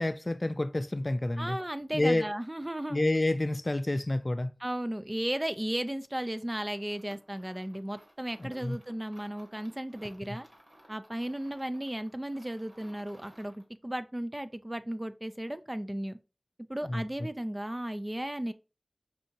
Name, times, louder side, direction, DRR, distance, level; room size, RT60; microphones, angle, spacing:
voice 1, 0.0-1.6 1.9-2.3 2.9-4.5 8.4-8.8 10.0-10.1 16.8-17.0, left 1 dB, 40° left, 0.4 m, -29 dB
voice 2, 1.4-3.0 4.6-10.5 10.9-16.2 16.7-18.5, right 1 dB, 20° right, 0.4 m, -35 dB
sound 1, 6.4-13.7, right 1 dB, 45° right, 1.4 m, -59 dB
5.4 x 2.7 x 2.8 m
wide cardioid pair, 55°, 0 cm